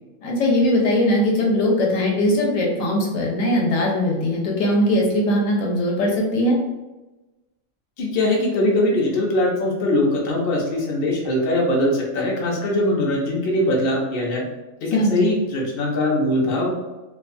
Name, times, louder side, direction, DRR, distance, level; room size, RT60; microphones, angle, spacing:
voice 1, 0.2-6.6 14.9-15.3, left 1 dB, 75° left, -2 dB, 1.0 m, -20 dB
voice 2, 8.0-14.4 14.8-16.7, left 1 dB, 60° left, -2 dB, 0.6 m, -21 dB
2.4 x 2.2 x 2.5 m, 1.1 s
omnidirectional pair, 1.4 m